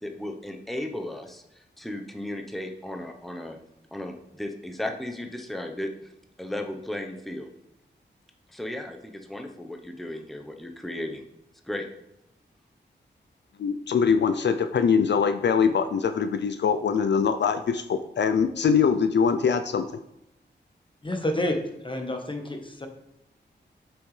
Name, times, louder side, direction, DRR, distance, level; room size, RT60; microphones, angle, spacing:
voice 1, 0.0-3.6 3.9-5.9 6.4-7.5 8.5-11.2 11.6-11.9, left 1 dB, ahead, 4 dB, 0.8 m, -35 dB
voice 2, 13.6-19.9, left 6 dB, 70° left, 9 dB, 0.4 m, -23 dB
voice 3, 21.0-22.9, left 1 dB, 25° left, 4 dB, 1.2 m, -29 dB
7.8 x 6.1 x 3.2 m, 0.84 s
wide cardioid pair, 85°, 19 cm